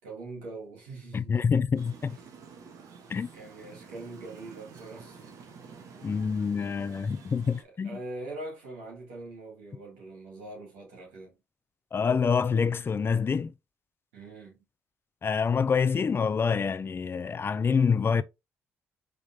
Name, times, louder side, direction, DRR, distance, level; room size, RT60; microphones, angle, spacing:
voice 1, 0.0-1.5 3.3-5.3 7.6-11.3 14.1-14.6, right 2 dB, 80° right, 2.6 m, -42 dB
voice 2, 1.1-2.2 3.1-3.3 6.0-8.0 11.9-13.5 15.2-18.2, left 6 dB, 35° left, 0.5 m, -26 dB
sound 1, 1.8-7.6, right 5 dB, 60° right, 1.1 m, -49 dB
5.1 x 3.6 x 2.7 m
hypercardioid pair, 50°, 6 cm